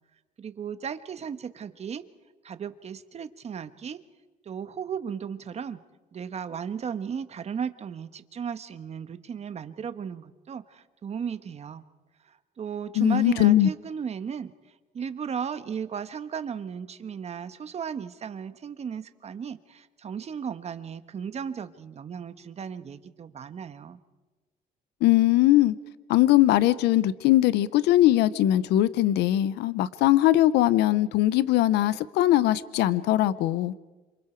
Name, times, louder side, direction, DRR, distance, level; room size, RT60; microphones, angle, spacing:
voice 1, 0.4-2.0 2.4-4.0 4.4-5.8 6.1-11.8 12.2-24.0, right 7 dB, 40° right, 1.3 m, -35 dB
voice 2, 13.0-13.7 25.0-25.8 26.1-33.7, left 14 dB, 85° left, 0.7 m, -21 dB
27.5 x 26.0 x 4.6 m
cardioid pair, 110°, 17 cm